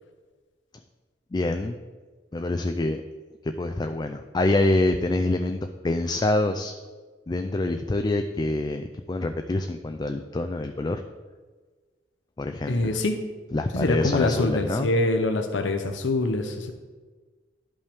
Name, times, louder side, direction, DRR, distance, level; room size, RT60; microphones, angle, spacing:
voice 1, 1.3-1.8 2.3-3.0 3.4-6.7 7.3-11.0 12.4-13.0 13.5-14.9, left 2 dB, 25° left, 7 dB, 0.3 m, -26 dB
voice 2, 12.7-13.2 13.7-16.7, left 2 dB, 80° left, 6 dB, 0.7 m, -24 dB
11.5 x 5.4 x 3.5 m, 1.4 s
head